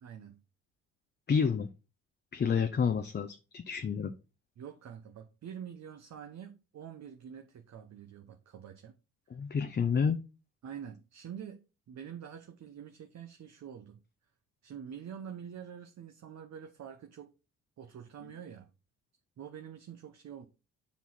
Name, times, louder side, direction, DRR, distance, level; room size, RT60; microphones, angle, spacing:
voice 1, 0.0-0.4 4.6-9.0 10.6-14.0 14.6-17.3 17.8-18.7 19.4-20.5, right 8 dB, 55° right, 0.9 m, -46 dB
voice 2, 1.3-1.7 2.3-4.1 9.3-10.2, left 6 dB, 30° left, 0.6 m, -29 dB
7.3 x 4.1 x 4.1 m
supercardioid pair, 65°, 33 cm